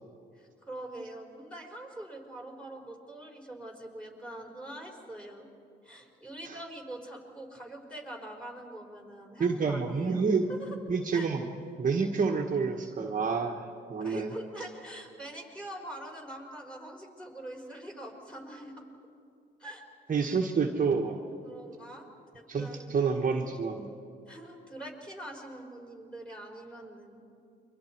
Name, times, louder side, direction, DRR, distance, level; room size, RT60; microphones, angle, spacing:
voice 1, 0.3-5.5 5.8-10.2 10.5-10.7 11.1-11.3 14.0-18.9 19.6-19.8 21.4-22.1 22.3-23.1 24.3-27.2, right 1 dB, 5° left, 0 dB, 4.9 m, -44 dB
voice 2, 9.4-10.4 10.9-11.5 11.8-14.3 20.1-21.2 22.5-23.9, right 5 dB, 40° right, 2 dB, 1.5 m, -28 dB
29.5 x 24.0 x 4.6 m, 2.5 s
cardioid pair, 90°, 20 cm